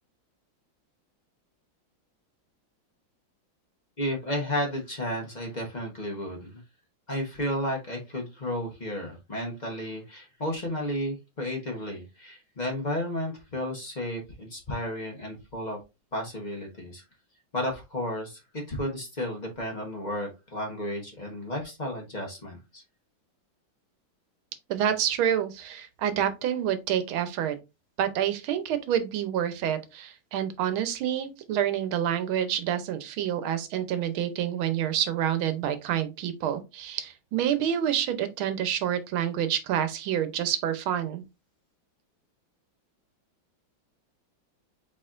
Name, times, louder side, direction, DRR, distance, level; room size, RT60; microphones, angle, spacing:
voice 1, 4.0-6.6 7.1-15.8 16.1-17.0 17.5-22.8, left 1 dB, 30° left, 0.8 m, -33 dB
voice 2, 24.7-27.6 28.0-41.2, right 10 dB, 85° right, 1.6 m, -28 dB
4.9 x 4.2 x 2.5 m
omnidirectional pair, 2.2 m